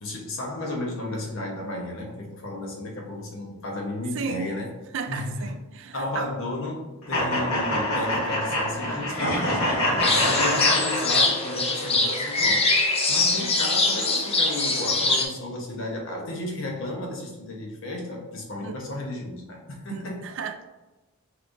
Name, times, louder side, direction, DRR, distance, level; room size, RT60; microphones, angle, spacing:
voice 1, 0.0-4.7 5.1-5.5 5.9-20.3, left 1 dB, 60° left, 0 dB, 1.0 m, -33 dB
voice 2, 4.1-4.5 4.9-6.3 18.6-18.8 19.9-20.7, right 5 dB, 55° right, 8 dB, 0.3 m, -34 dB
sound 1, 7.1-11.7, left 1 dB, 85° left, 1.3 m, -25 dB
sound 2, 10.0-15.2, left 3 dB, 25° left, 0.5 m, -23 dB
5.7 x 3.1 x 2.6 m, 1.1 s
head